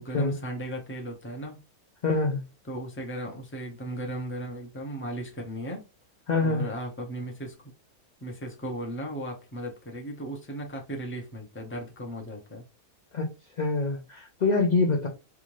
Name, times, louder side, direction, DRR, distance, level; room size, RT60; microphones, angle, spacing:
voice 1, 0.0-1.6 2.6-5.8 6.4-7.6 8.2-12.6, right 1 dB, 10° left, 1 dB, 0.6 m, -36 dB
voice 2, 2.0-2.4 6.3-6.7 13.1-13.3 13.6-15.1, left 3 dB, 60° left, 1 dB, 0.4 m, -25 dB
3.5 x 2.5 x 3.1 m, 0.29 s
omnidirectional pair, 1.6 m